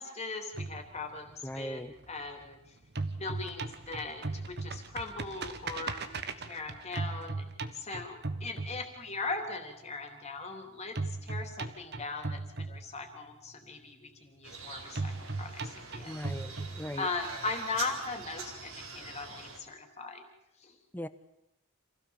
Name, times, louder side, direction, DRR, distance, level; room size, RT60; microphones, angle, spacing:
voice 1, 0.0-1.8 2.1-2.6 3.2-7.4 7.7-15.1 15.4-15.6 15.9-16.2 17.0-20.2 20.6-20.8, left 3 dB, 30° left, 5 dB, 3.3 m, -39 dB
sound 1, 0.5-2.5 2.8-9.3 11.0-13.3 15.0-17.3, right 3 dB, 50° right, 1.4 m, -38 dB
voice 2, 1.4-1.9 16.1-17.1 20.9-21.1, equal, 10° left, 13 dB, 1.0 m, -39 dB
sound 2, 14.4-19.6, right 4 dB, 80° right, 4.2 m, -44 dB
27.0 x 16.5 x 7.3 m, 0.83 s
head